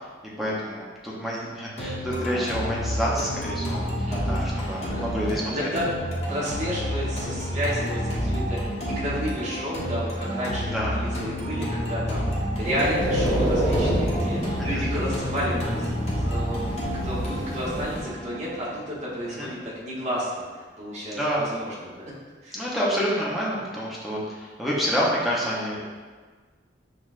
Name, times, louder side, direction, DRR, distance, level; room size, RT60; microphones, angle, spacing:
voice 1, 0.4-5.8 10.6-11.1 14.7-14.9 19.4-19.5 21.1-21.5 22.5-25.8, equal, ahead, -6 dB, 0.6 m, -28 dB
sound 1, 1.8-19.8, equal, 35° left, 0.8 m, -30 dB
voice 2, 4.1-5.0 5.5-5.8 6.3-22.0 22.4-22.6, equal, 35° right, -6 dB, 1.0 m, -32 dB
sound 2, 12.6-18.0, equal, 60° right, 1.1 m, -27 dB
6.2 x 2.3 x 2.4 m, 1.5 s
head